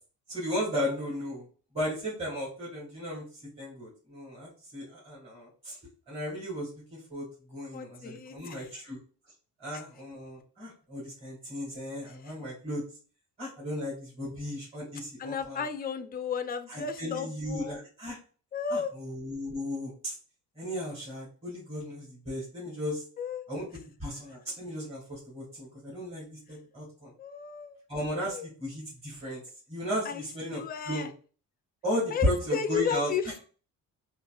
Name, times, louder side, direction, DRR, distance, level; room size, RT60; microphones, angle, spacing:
voice 1, 0.3-1.4 1.7-3.2 3.6-5.8 6.1-9.0 9.6-12.8 13.4-15.6 16.7-18.2 18.7-20.1 20.5-23.0 23.5-23.7 24.0-27.1 27.9-29.4 29.7-31.1 31.8-33.1, equal, 15° right, -6 dB, 1.7 m, -35 dB
voice 2, 7.7-8.8 9.7-9.8 12.1-12.3 15.2-17.8 18.5-18.9 23.2-23.4 27.2-27.8 28.1-28.5 30.0-30.2 30.5-31.1 32.1-33.4, left 6 dB, 30° left, 8 dB, 0.4 m, -34 dB
4.1 x 2.4 x 2.3 m, 0.38 s
cardioid pair, 135°, 34 cm